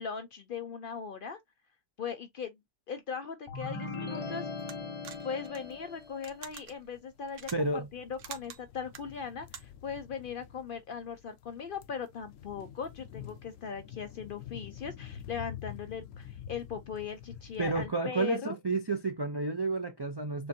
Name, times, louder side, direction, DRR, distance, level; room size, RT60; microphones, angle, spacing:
voice 1, 0.0-1.4 2.0-2.6 2.9-4.5 5.2-18.6, left 6 dB, 60° left, 0.6 m, -39 dB
sound 1, 3.5-6.3, left 3 dB, 30° left, 0.8 m, -39 dB
sound 2, 4.6-9.9, right 8 dB, 80° right, 1.1 m, -48 dB
sound 3, 5.6-6.5 7.0-17.9, left 10 dB, 90° left, 1.0 m, -48 dB
voice 2, 7.5-7.9 17.6-20.5, right 3 dB, 40° right, 0.3 m, -31 dB
6.6 x 2.5 x 2.7 m
omnidirectional pair, 1.3 m